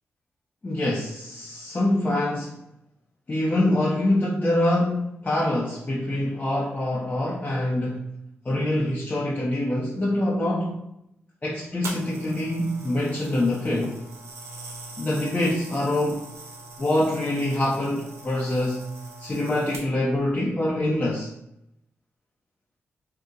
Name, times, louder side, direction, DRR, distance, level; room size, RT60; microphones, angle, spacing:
voice 1, 0.6-2.6 3.3-8.1 8.4-10.8 11.4-14.0 15.0-16.3 16.8-18.9 19.2-21.3, left 1 dB, 30° left, -2 dB, 0.6 m, -25 dB
sound 1, 11.8-20.2 20.9-21.1, right 2 dB, 80° right, 0.6 m, -42 dB
2.8 x 2.5 x 3.5 m, 0.80 s
cardioid pair, 60°, 5 cm